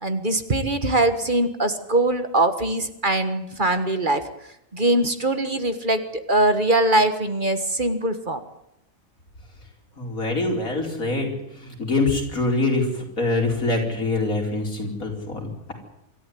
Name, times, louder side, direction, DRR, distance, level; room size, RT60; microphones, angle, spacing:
voice 1, 0.0-4.2 4.7-8.4, right 2 dB, 35° right, 9 dB, 1.7 m, -22 dB
voice 2, 10.0-15.7, left 2 dB, 85° left, 1 dB, 5.2 m, -25 dB
25.5 x 13.5 x 9.6 m, 0.82 s
omnidirectional pair, 1.5 m